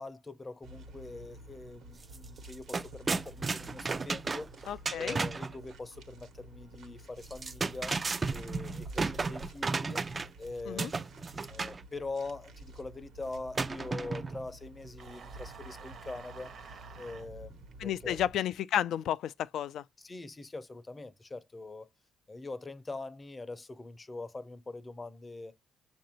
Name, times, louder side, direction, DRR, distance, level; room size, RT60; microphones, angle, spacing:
voice 1, 0.0-8.0 8.3-10.0 10.4-18.2 20.0-21.9 22.3-25.5, left 3 dB, 25° left, 0.6 m, -43 dB
sound 1, 0.6-18.3, right 1 dB, 80° right, 1.0 m, -50 dB
sound 2, 2.0-2.2 2.4-5.5 7.2-10.4 10.8-11.8 13.5-14.5, right 4 dB, 30° right, 0.3 m, -33 dB
voice 2, 4.7-5.2 10.7-10.9 17.8-19.8, left 10 dB, 75° left, 0.3 m, -32 dB
sound 3, 15.0-17.3, right 6 dB, 55° right, 0.8 m, -50 dB
6.5 x 2.6 x 2.9 m
cardioid pair, 90°, 0 cm